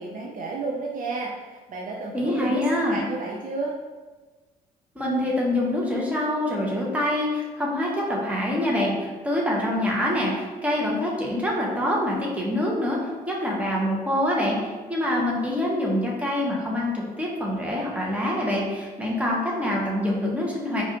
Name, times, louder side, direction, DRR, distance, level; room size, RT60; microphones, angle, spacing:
voice 1, 0.0-3.7, right 3 dB, 40° right, -2 dB, 0.6 m, -32 dB
voice 2, 2.1-3.0 4.9-13.0 13.3-20.8, left 1 dB, 5° right, -3 dB, 1.2 m, -25 dB
4.7 x 2.7 x 2.9 m, 1.3 s
hypercardioid pair, 55°, 20 cm